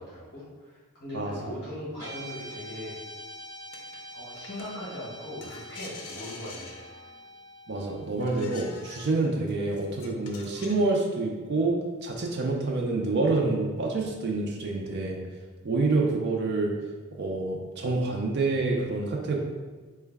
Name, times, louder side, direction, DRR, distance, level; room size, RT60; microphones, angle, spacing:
voice 1, 0.0-3.0 4.1-6.8, left 1 dB, 50° left, -10 dB, 1.2 m, -40 dB
Guitar, 2.0-10.4, equal, 15° right, 1.2 m, -46 dB
sound 1, 3.7-4.7 5.4-7.2 8.2-10.9, left 4 dB, 80° left, 0.5 m, -46 dB
voice 2, 7.7-15.2 15.6-16.7 17.2-19.4, right 3 dB, 50° right, 0 dB, 0.4 m, -27 dB
3.8 x 2.2 x 3.4 m, 1.4 s
head